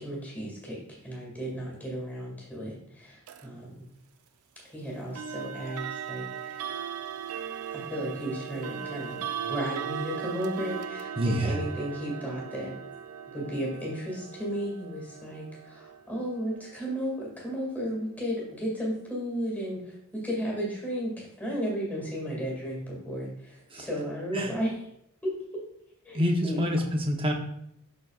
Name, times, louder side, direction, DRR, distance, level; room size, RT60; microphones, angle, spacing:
voice 1, 0.0-3.8 4.6-6.6 7.7-12.7 13.3-24.8 25.2-25.3 26.0-26.6, equal, 5° left, -3 dB, 2.1 m, -34 dB
sound 1, 3.3-3.5 5.2-18.0, right 8 dB, 80° right, 0.4 m, -38 dB
voice 2, 11.2-11.6 23.7-23.9 24.3-24.5 26.1-27.3, equal, 25° right, 1 dB, 0.9 m, -27 dB
12.5 x 4.2 x 2.4 m, 0.77 s
head